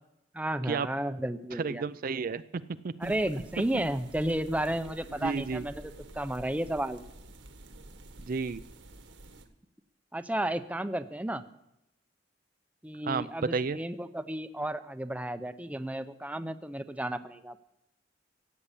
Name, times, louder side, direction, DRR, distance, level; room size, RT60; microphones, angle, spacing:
voice 1, 0.3-1.8 3.0-7.0 10.1-11.4 12.8-17.5, right 1 dB, 10° right, 10 dB, 0.6 m, -33 dB
voice 2, 1.5-3.1 5.2-5.6 8.3-8.6 13.0-13.8, right 4 dB, 50° right, 13 dB, 0.5 m, -32 dB
sound 1, 3.0-9.5, right 1 dB, 80° right, 1.6 m, -49 dB
16.0 x 8.5 x 8.3 m, 0.87 s
head